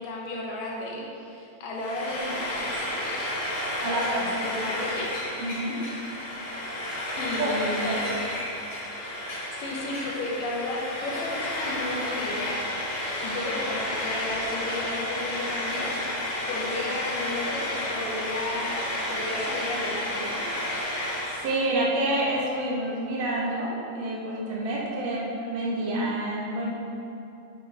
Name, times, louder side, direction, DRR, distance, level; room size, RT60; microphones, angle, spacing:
voice 1, 0.0-3.4 3.8-5.3 7.2-8.0 9.6-12.6 13.2-15.9 16.5-20.4, left 2 dB, 80° left, -2 dB, 2.6 m, -33 dB
Frying (food), 1.7-21.5, left 1 dB, 40° left, 1.7 m, -31 dB
voice 2, 3.8-4.3 5.4-5.8 7.0-7.1 7.4-7.5 7.8-8.1 21.4-26.7, right 1 dB, 75° right, -4 dB, 2.7 m, -28 dB
7.5 x 7.3 x 3.4 m, 2.7 s
omnidirectional pair, 3.8 m